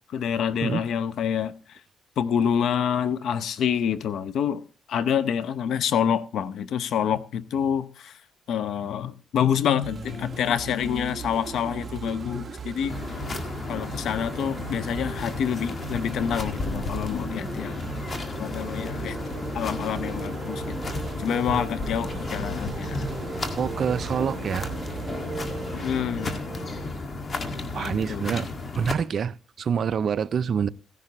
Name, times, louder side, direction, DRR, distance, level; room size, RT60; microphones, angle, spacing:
voice 1, 0.1-1.5 2.2-4.6 4.9-8.1 8.5-13.0 13.7-17.9 18.4-19.2 19.5-20.8 21.2-23.0 25.7-26.4 27.8-28.4, left 8 dB, 70° left, 0.7 m, -27 dB
sound 1, 9.8-25.8, right 6 dB, 35° right, 1.2 m, -39 dB
sound 2, 12.9-28.9, left 3 dB, 35° left, 1.8 m, -33 dB
sound 3, 18.4-26.8, right 2 dB, 5° right, 3.4 m, -38 dB
voice 2, 23.6-24.7 27.7-28.5 28.7-30.7, right 7 dB, 55° right, 0.4 m, -26 dB
16.0 x 11.0 x 3.0 m
cardioid pair, 90°, 0 cm